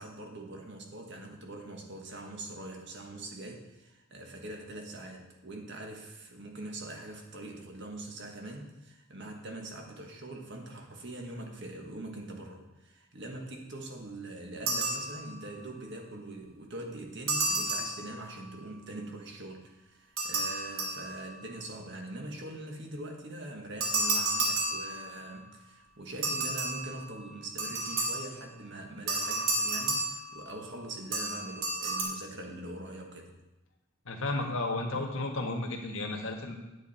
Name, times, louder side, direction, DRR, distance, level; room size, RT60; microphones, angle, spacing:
voice 1, 0.0-33.3, right 1 dB, 55° right, 2 dB, 1.6 m, -43 dB
sound 1, 14.7-15.6 17.3-18.6 20.2-21.6 23.8-25.4 26.2-28.5 29.1-30.8 31.1-32.0, right 2 dB, 75° right, 2.3 m, -32 dB
voice 2, 34.0-36.5, left 2 dB, 70° left, 2 dB, 1.5 m, -33 dB
9.6 x 9.0 x 4.4 m, 1.0 s
head